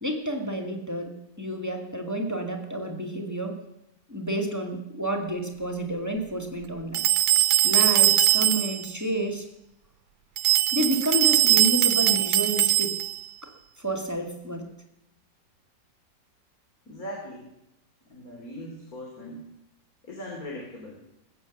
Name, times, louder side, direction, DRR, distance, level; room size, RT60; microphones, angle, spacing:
voice 1, 0.0-3.6 4.1-7.0 7.6-9.5 10.7-12.9 13.8-14.7, right 1 dB, 10° right, 2 dB, 2.0 m, -30 dB
sound 1, 6.9-8.9 10.4-13.2, right 14 dB, 90° right, 1.5 m, -21 dB
voice 2, 16.9-17.5 18.1-19.5 20.0-21.0, left 1 dB, 50° left, -1 dB, 3.4 m, -39 dB
20.5 x 8.9 x 7.2 m, 0.85 s
omnidirectional pair, 2.0 m